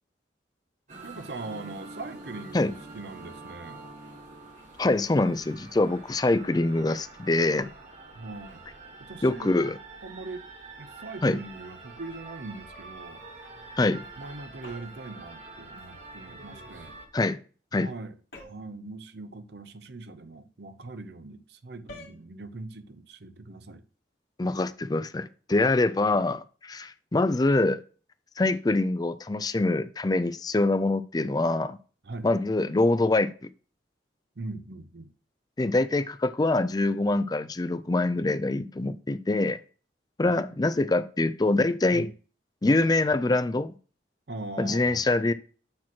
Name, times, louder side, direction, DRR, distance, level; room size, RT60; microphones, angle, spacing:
sound 1, 0.9-17.1, right 3 dB, 40° right, 1.4 m, -46 dB
voice 1, 1.0-3.8 8.1-8.6 9.0-9.6 10.0-10.4 10.8-13.2 14.2-17.0 17.7-18.2 18.4-23.8 32.0-32.3 34.4-35.1 40.3-40.6 41.9-42.1 44.3-45.0, right 2 dB, 60° right, 0.7 m, -41 dB
voice 2, 4.8-7.7 9.2-9.7 11.2-11.4 13.8-14.1 17.1-17.4 17.7-17.9 24.4-27.8 28.4-31.8 32.2-33.5 35.6-39.6 40.2-42.1 42.6-43.7 44.6-45.3, left 2 dB, 20° left, 0.4 m, -24 dB
sound 2, 14.6-15.1 18.3-18.8 21.9-22.2, left 1 dB, 55° left, 2.2 m, -47 dB
8.6 x 3.0 x 5.9 m
head